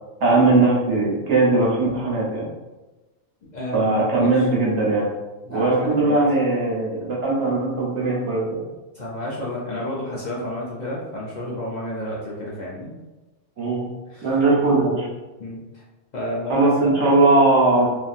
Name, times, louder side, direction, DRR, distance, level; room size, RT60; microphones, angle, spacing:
voice 1, 0.2-2.5 3.7-5.1 5.5-8.6 13.6-13.9 14.2-15.1 16.5-17.9, right 2 dB, 75° right, -5 dB, 1.2 m, -19 dB
voice 2, 3.4-3.9 4.2-4.5 5.4-6.2 8.9-12.9 14.1-14.3 15.4-15.8 16.1-17.0, left 1 dB, 55° left, -6 dB, 0.5 m, -31 dB
2.8 x 2.4 x 2.4 m, 1.1 s
omnidirectional pair, 1.2 m